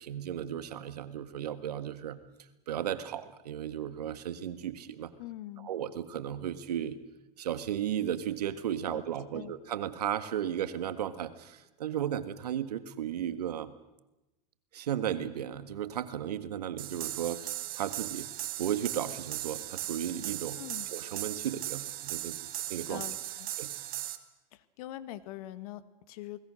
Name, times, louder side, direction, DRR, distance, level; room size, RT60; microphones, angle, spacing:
voice 1, 0.0-2.2 2.7-5.1 5.6-7.0 7.4-13.7 14.7-17.5 17.7-18.3 18.6-20.6 20.9-22.4 22.7-23.0 23.6-23.7, right 10 dB, 85° right, 11 dB, 1.7 m, -35 dB
voice 2, 5.2-5.7 8.9-9.0 9.3-9.6 20.5-20.9 22.9-23.5 24.5-26.4, left 14 dB, 65° left, 13 dB, 1.6 m, -43 dB
sound 1, 16.8-24.2, right 15 dB, 50° right, 1.9 m, -38 dB
29.0 x 20.0 x 6.4 m, 0.98 s
hypercardioid pair, 100°, 20 cm